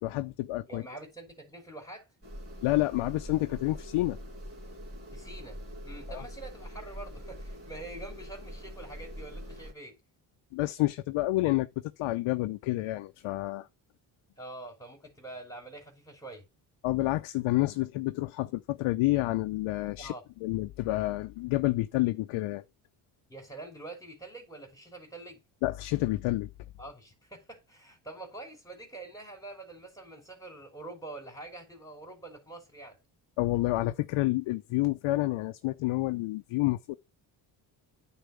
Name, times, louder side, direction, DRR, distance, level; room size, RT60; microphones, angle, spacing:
voice 1, 0.0-0.8 2.6-4.2 6.1-6.2 10.5-11.7 12.0-13.7 16.8-20.1 20.4-22.6 25.6-26.5 33.4-37.0, left 18 dB, 80° left, 0.7 m, -29 dB
voice 2, 0.7-2.1 5.1-5.6 5.8-9.9 14.4-16.4 20.0-20.2 23.3-25.4 26.8-33.0, right 2 dB, 10° left, 3.3 m, -45 dB
sound 1, 2.2-9.7, equal, 30° right, 3.1 m, -43 dB
9.1 x 4.3 x 7.0 m
supercardioid pair, 70°, 48 cm